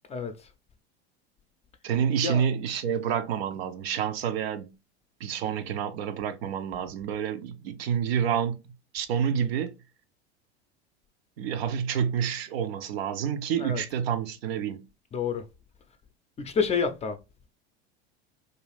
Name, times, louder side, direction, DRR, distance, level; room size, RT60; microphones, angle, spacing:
voice 1, 1.8-4.7 5.2-8.6 8.9-9.7 11.4-14.8, right 8 dB, 70° right, 0.5 m, -28 dB
voice 2, 15.1-15.5 16.4-17.2, left 5 dB, 20° left, 0.4 m, -28 dB
2.5 x 2.3 x 3.2 m
hypercardioid pair, 80°, 32 cm